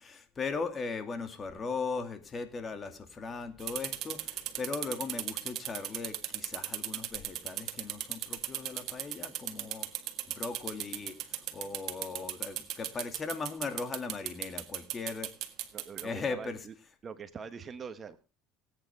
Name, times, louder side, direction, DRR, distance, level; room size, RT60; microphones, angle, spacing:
voice 1, 0.0-9.9 10.3-15.3 16.0-16.6, left 4 dB, 30° left, 8 dB, 2.4 m, -38 dB
sound 1, 3.6-16.0, right 13 dB, 60° right, 1.7 m, -37 dB
voice 2, 15.7-16.7 17.0-18.2, right 6 dB, 35° right, 11 dB, 1.1 m, -43 dB
19.0 x 9.0 x 3.5 m, 0.32 s
supercardioid pair, 100°, 0 cm